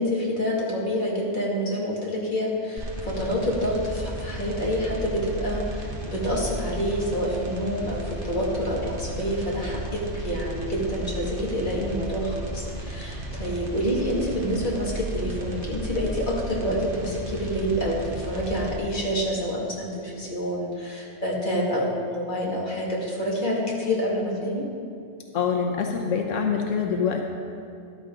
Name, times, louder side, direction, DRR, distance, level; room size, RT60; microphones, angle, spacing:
voice 1, 0.0-24.7, equal, 40° left, -4 dB, 2.3 m, -27 dB
sound 1, 2.8-18.8, right 1 dB, 45° right, 1.4 m, -34 dB
voice 2, 25.3-27.2, left 6 dB, 85° left, 2 dB, 1.2 m, -25 dB
13.5 x 12.0 x 3.8 m, 2.6 s
omnidirectional pair, 1.3 m